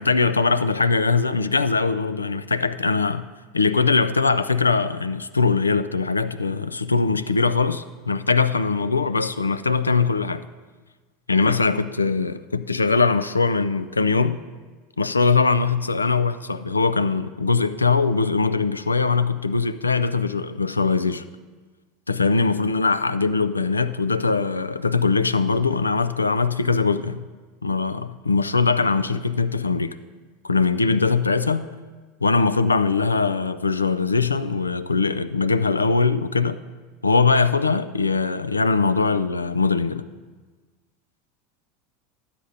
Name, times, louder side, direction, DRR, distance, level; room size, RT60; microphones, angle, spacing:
voice 1, 0.0-3.3 3.5-10.5 11.3-14.4 15.0-21.2 22.1-27.2 27.6-30.0 30.4-31.7 32.2-36.6 37.0-40.0, left 4 dB, 90° left, 14 dB, 0.3 m, -21 dB
12.5 x 8.5 x 3.9 m, 1.4 s
figure-of-eight pair, 80°, 0 cm